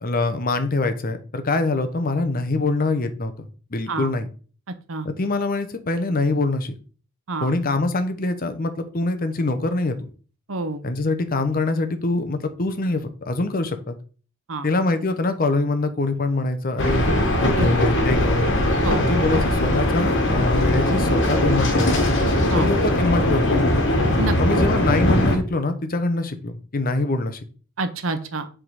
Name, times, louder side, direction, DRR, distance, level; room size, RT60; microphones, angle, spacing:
voice 1, 0.0-3.3 3.7-4.3 5.0-6.7 7.4-10.0 10.8-14.0 14.6-18.5 19.0-22.1 22.5-23.6 24.4-27.4, left 2 dB, 45° left, 9 dB, 0.9 m, -24 dB
voice 2, 10.5-10.8 14.5-14.7 17.6-17.7 18.8-19.0 22.5-22.7 24.2-24.3 27.8-28.5, right 3 dB, 70° right, 9 dB, 0.9 m, -27 dB
sound 1, 16.8-25.4, left 1 dB, 60° left, 1.6 m, -20 dB
7.6 x 3.7 x 4.8 m, 0.39 s
head